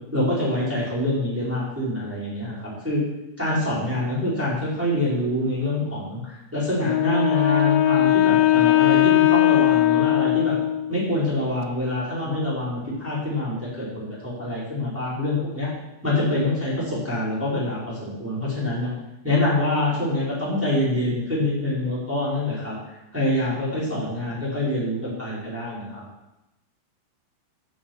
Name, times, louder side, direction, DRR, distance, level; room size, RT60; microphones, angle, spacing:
voice 1, 0.1-3.0 3.4-10.5 10.9-15.7 16.0-18.9 19.2-22.7 23.1-26.0, left 1 dB, 5° right, -8 dB, 4.3 m, -25 dB
Wind instrument woodwind instrument, 6.8-11.0, left 14 dB, 80° left, 2.4 m, -19 dB
10.0 x 8.5 x 7.9 m, 0.94 s
omnidirectional pair, 4.4 m